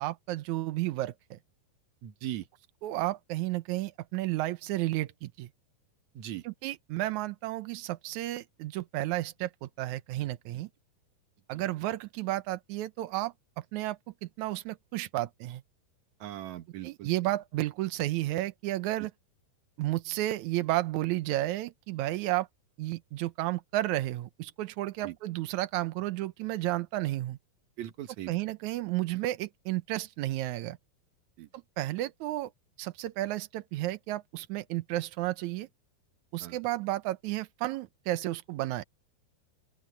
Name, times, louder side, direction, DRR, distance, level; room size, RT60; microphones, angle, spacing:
voice 1, 0.0-1.4 2.8-5.5 6.4-10.7 11.5-15.6 16.8-19.1 19.8-22.5 22.8-27.4 28.3-30.8 31.8-32.5 32.8-35.7 36.3-38.9, right 16 dB, 80° right, 1.7 m, -32 dB
voice 2, 2.0-2.5 6.2-6.4 16.2-17.1 25.0-25.1 27.8-28.3 31.4-31.5 36.4-36.6, right 13 dB, 60° right, 2.1 m, -39 dB
open air
omnidirectional pair, 4.4 m